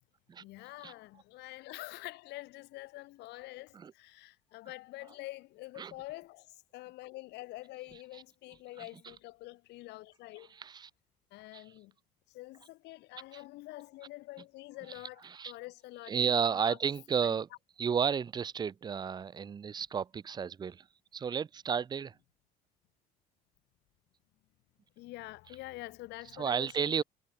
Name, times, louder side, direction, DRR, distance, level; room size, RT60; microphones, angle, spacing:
voice 1, 0.4-10.6 11.3-11.9 12.3-16.8 17.2-17.4 25.0-27.0, left 19 dB, 85° left, 3.3 m, -46 dB
voice 2, 10.5-10.9 11.5-11.6 13.3-13.4 15.2-15.5 16.1-17.5 17.8-20.9 21.1-22.1 26.3-27.0, right 7 dB, 25° right, 0.5 m, -32 dB
cardioid pair, 110°, 17 cm